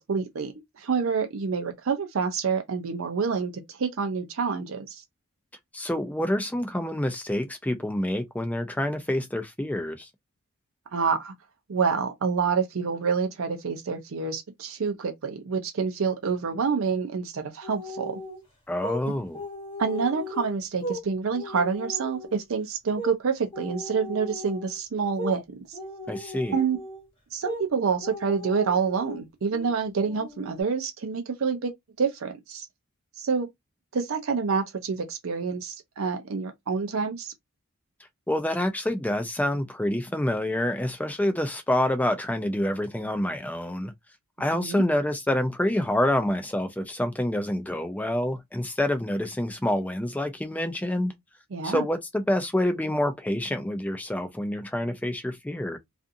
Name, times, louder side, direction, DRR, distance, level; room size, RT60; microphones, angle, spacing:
voice 1, 0.0-5.0 10.9-11.3 11.7-18.2 19.8-25.8 26.5-26.8 27.3-31.7 32.0-32.7 33.2-33.5 33.9-37.3 44.5-44.8 51.5-51.8, right 5 dB, 65° right, 0.5 m, -27 dB
voice 2, 5.7-10.1 18.7-19.4 26.1-26.6 38.3-43.9 44.4-51.1 51.6-55.8, left 1 dB, 5° left, 0.4 m, -27 dB
sound 1, 17.6-18.4 18.8-19.0 19.3-21.0 21.3-22.4 23.0-23.2 23.5-24.8 25.2-25.4 25.7-27.1 27.4-27.7 28.0-29.2 29.5-29.7 30.1-30.6, left 1 dB, 25° left, 1.0 m, -37 dB
2.5 x 2.4 x 2.5 m
head